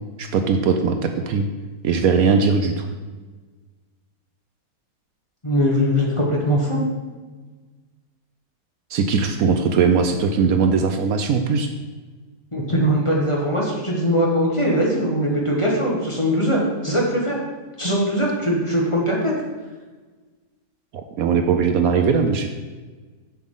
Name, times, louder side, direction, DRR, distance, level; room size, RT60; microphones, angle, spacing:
voice 1, 0.2-1.5 1.8-3.0 8.9-11.7 21.2-22.5, right 5 dB, 70° right, 6 dB, 1.0 m, -19 dB
voice 2, 5.4-6.8 12.5-17.4 17.8-19.3, equal, 20° left, -3 dB, 1.4 m, -21 dB
7.4 x 7.1 x 3.9 m, 1.3 s
omnidirectional pair, 1.7 m